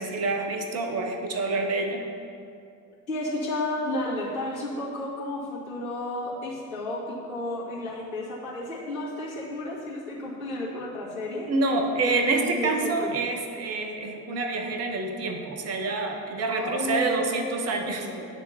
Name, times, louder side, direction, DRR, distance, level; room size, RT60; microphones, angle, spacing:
voice 1, 0.0-2.0 11.5-18.1, right 3 dB, 35° right, 3 dB, 1.1 m, -27 dB
voice 2, 3.1-11.5 12.1-13.1 16.5-18.3, left 1 dB, 70° left, -7 dB, 2.3 m, -32 dB
10.5 x 3.6 x 7.2 m, 2.4 s
figure-of-eight pair, 55°, 42 cm